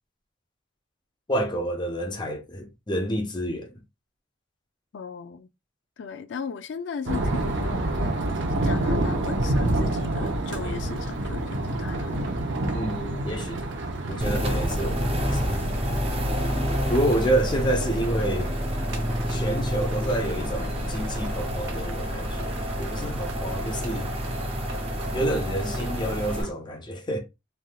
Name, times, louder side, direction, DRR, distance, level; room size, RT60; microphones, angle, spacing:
voice 1, 1.3-3.7 12.7-13.7 14.1-15.6 16.9-18.5 19.3-24.1 25.1-27.2, right 1 dB, 25° left, 0.5 m, -28 dB
voice 2, 4.9-5.5 6.0-8.2 8.6-12.2 12.7-12.8 16.6-16.7, left 6 dB, 70° left, 0.4 m, -37 dB
sound 1, 7.1-26.5, right 1 dB, 80° right, 0.8 m, -30 dB
sound 2, 14.2-26.4, equal, 30° right, 0.6 m, -28 dB
3.3 x 2.6 x 2.3 m
head